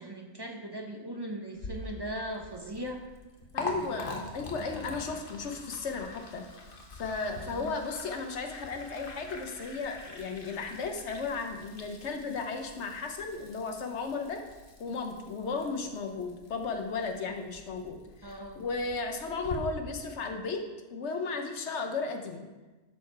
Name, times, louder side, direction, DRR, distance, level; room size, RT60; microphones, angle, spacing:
voice 1, 0.0-3.0 7.4-7.7 18.2-18.6, right 1 dB, 25° right, 2 dB, 0.7 m, -39 dB
Liquid, 1.5-19.6, left 2 dB, 50° left, 1.2 m, -45 dB
voice 2, 3.5-6.4 6.9-14.4 14.8-20.6 20.9-22.5, left 4 dB, 75° left, 5 dB, 1.2 m, -35 dB
11.5 x 4.8 x 4.6 m, 1.2 s
omnidirectional pair, 1.2 m